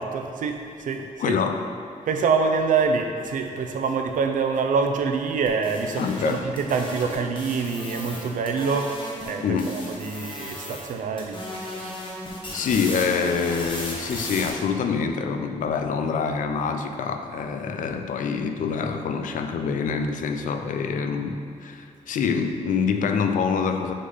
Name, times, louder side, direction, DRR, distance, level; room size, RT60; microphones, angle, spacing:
voice 1, 0.0-1.4 2.1-11.4 11.7-11.9, right 5 dB, 90° right, 5 dB, 0.6 m, -26 dB
voice 2, 1.0-1.7 6.0-6.5 9.4-9.8 12.5-23.9, left 5 dB, 85° left, 6 dB, 0.5 m, -26 dB
sound 1, 5.4-9.3 9.6-10.9 11.2-14.5, left 1 dB, 40° left, 1.2 m, -36 dB
6.4 x 3.8 x 5.5 m, 2.6 s
wide cardioid pair, 150°, 13 cm